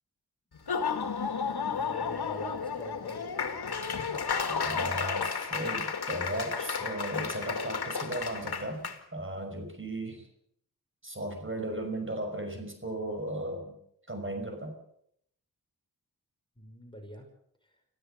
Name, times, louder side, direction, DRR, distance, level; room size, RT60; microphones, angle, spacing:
Laughter / Applause, 0.5-9.0, left 5 dB, 80° left, 2.3 m, -32 dB
voice 1, 1.7-3.3 16.6-17.3, equal, 15° left, 3 dB, 5.6 m, -45 dB
voice 2, 4.5-8.8 9.1-10.3 11.0-13.8 14.1-14.7, right 1 dB, 30° right, 5 dB, 5.9 m, -36 dB
25.5 x 15.5 x 6.8 m, 0.70 s
cardioid pair, 50°, 38 cm